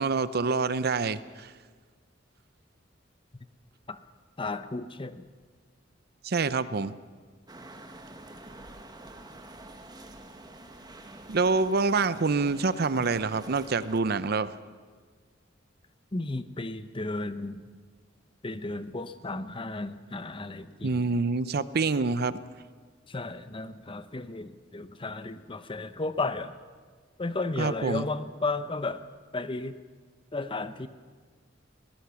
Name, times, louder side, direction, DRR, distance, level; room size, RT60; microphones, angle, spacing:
voice 1, 0.0-1.5 6.2-6.9 11.3-14.5 20.8-22.4 27.6-28.1, right 4 dB, 55° right, 15 dB, 0.6 m, -26 dB
voice 2, 4.4-5.2 16.1-17.6 18.4-21.0 23.1-26.6 27.2-29.0 29.3-29.8 30.3-30.9, left 2 dB, 25° left, 12 dB, 0.8 m, -33 dB
sound 1, 7.5-14.0, right 1 dB, 20° right, 1.5 m, -47 dB
22.0 x 18.0 x 7.0 m, 1.5 s
head